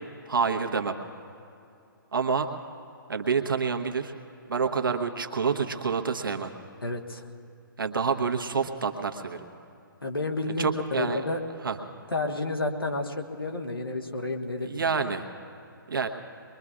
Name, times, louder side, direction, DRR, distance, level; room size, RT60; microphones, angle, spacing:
voice 1, 0.3-1.0 2.1-2.5 3.1-4.1 4.5-6.5 7.8-9.4 10.6-11.2 11.6-11.8 14.6-15.3 15.9-16.1, right 5 dB, 70° right, 4 dB, 1.2 m, -27 dB
voice 2, 6.8-7.3 10.0-11.4 12.1-14.9, left 2 dB, 80° left, 2 dB, 1.5 m, -31 dB
23.5 x 22.5 x 2.5 m, 2.7 s
figure-of-eight pair, 135°, 12 cm